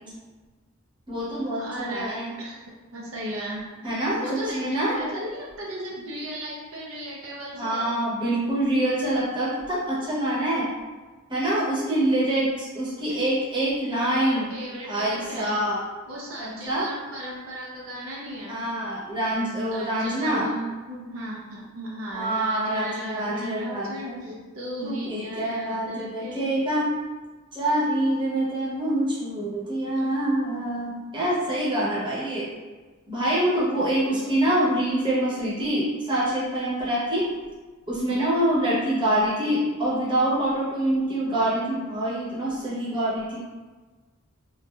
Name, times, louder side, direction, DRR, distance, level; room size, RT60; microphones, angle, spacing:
voice 1, 1.1-2.3 3.8-4.2 4.5-5.1 7.5-10.7 11.3-14.5 14.8-15.8 16.4-16.9 18.5-20.5 22.1-24.4 24.8-26.9 27.5-32.5 33.1-37.3 37.9-43.4, right 1 dB, 25° right, -8 dB, 0.8 m, -25 dB
voice 2, 1.6-2.6 2.9-7.9 14.1-15.6 16.1-18.6 19.7-26.5 30.0-30.1 34.1-34.5, equal, 75° right, -4 dB, 0.6 m, -36 dB
3.1 x 2.5 x 2.3 m, 1.3 s
head